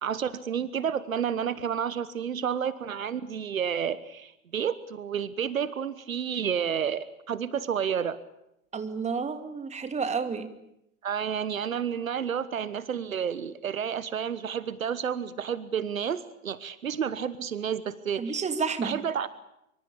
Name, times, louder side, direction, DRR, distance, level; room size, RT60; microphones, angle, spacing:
voice 1, 0.0-8.2 11.0-18.4 18.8-19.3, right 8 dB, 70° right, 17 dB, 1.3 m, -30 dB
voice 2, 8.7-10.5 18.2-19.0, right 5 dB, 15° right, 9 dB, 2.7 m, -30 dB
25.5 x 24.5 x 8.6 m, 0.82 s
figure-of-eight pair, 90°, 42 cm